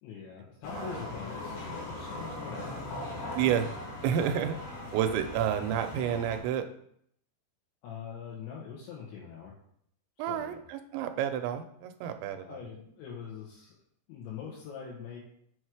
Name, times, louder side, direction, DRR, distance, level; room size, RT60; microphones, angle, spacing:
voice 1, 0.0-3.2 7.8-9.5 10.2-10.6 12.4-13.7 14.1-15.2, left 7 dB, 80° left, -4 dB, 3.6 m, -43 dB
sound 1, 0.6-6.4, left 2 dB, 60° left, 3.6 m, -39 dB
voice 2, 3.4-3.7 4.0-4.5 4.9-6.7 10.2-12.6, right 9 dB, 90° right, 8 dB, 3.0 m, -30 dB
6.3 x 6.2 x 4.8 m, 0.68 s
omnidirectional pair, 5.2 m